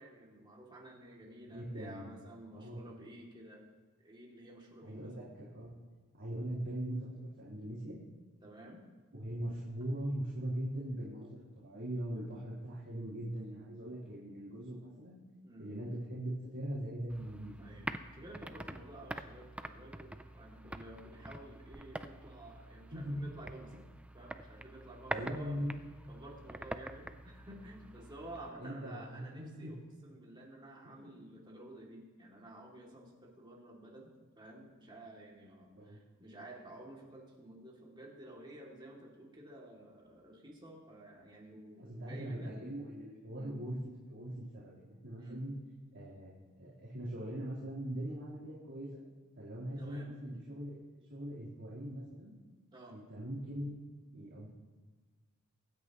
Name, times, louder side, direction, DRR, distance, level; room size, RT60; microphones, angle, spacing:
voice 1, 0.0-3.6 4.0-5.1 8.4-8.8 15.4-15.7 17.6-23.8 24.1-25.6 26.1-29.8 30.0-34.1 34.4-42.5 43.3-43.6 45.2-45.4 49.8-50.1 52.7-52.9, right 1 dB, 20° right, -3 dB, 2.5 m, -52 dB
voice 2, 1.5-2.1 2.5-2.8 4.8-8.0 9.1-15.2 15.6-17.7 22.9-23.3 25.1-25.7 28.6-29.8 30.8-31.1 35.8-36.0 41.8-43.8 44.1-45.5 45.9-48.9 49.4-50.8 51.1-52.4 52.9-53.8 54.1-54.5, right 1 dB, 55° right, -10 dB, 3.7 m, -41 dB
sound 1, 17.1-28.5, right 1 dB, 5° right, 0.4 m, -46 dB
24.5 x 9.7 x 3.0 m, 1.4 s
head